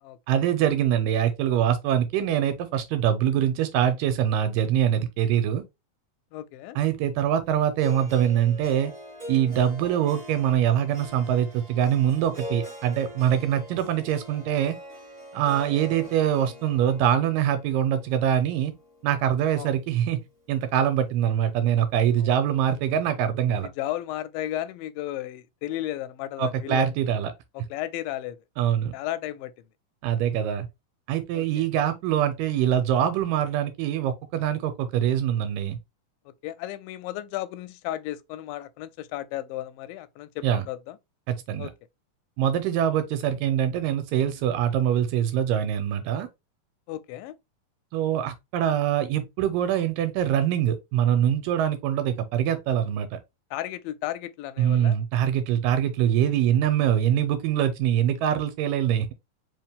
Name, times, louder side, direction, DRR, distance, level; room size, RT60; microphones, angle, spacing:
voice 1, 0.3-5.6 6.8-8.9 9.3-14.8 15.3-18.7 19.0-20.2 20.5-23.7 26.4-27.3 28.6-28.9 30.0-30.7 31.1-35.8 40.4-40.6 41.3-41.7 42.4-46.3 47.9-53.2 54.6-59.1, right 10 dB, 85° right, 2.2 m, -24 dB
voice 2, 6.3-6.8 19.6-19.7 22.2-22.3 23.5-26.9 27.5-28.4 28.9-29.5 31.3-31.5 36.3-41.0 41.6-41.7 46.9-47.3 53.5-55.0, left 13 dB, 85° left, 2.3 m, -34 dB
Harp, 7.8-19.9, left 1 dB, 20° right, 1.1 m, -43 dB
5.0 x 2.9 x 3.5 m
omnidirectional pair, 3.9 m